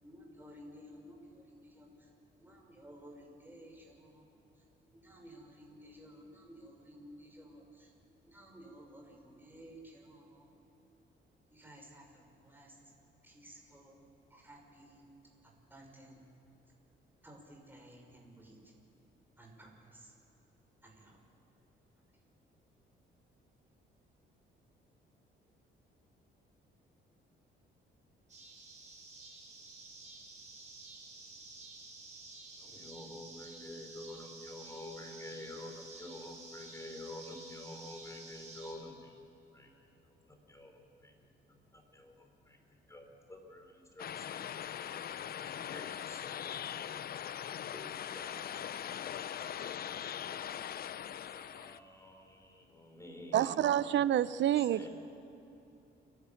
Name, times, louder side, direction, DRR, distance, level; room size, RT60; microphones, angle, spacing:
voice 1, 0.0-4.3 4.6-4.7 4.9-7.9 8.2-10.6 11.5-12.8 13.2-14.0 14.3-15.0 15.4-16.2 17.2-18.7 19.4-20.1 20.8-21.2, equal, 10° right, 5.8 m, -55 dB
sound 1, 28.3-38.7, right 3 dB, 35° right, 5.4 m, -51 dB
voice 2, 32.6-39.2 39.5-39.7 40.0-41.1 41.5-46.5 47.0-47.3 47.7-50.3 50.9-53.7 54.5-54.9, left 1 dB, 15° left, 4.1 m, -50 dB
sound 2, 44.0-51.8, left 9 dB, 50° left, 0.6 m, -41 dB
voice 3, 53.3-54.8, right 11 dB, 65° right, 0.7 m, -28 dB
29.5 x 12.0 x 7.2 m
cardioid pair, 90°, 20 cm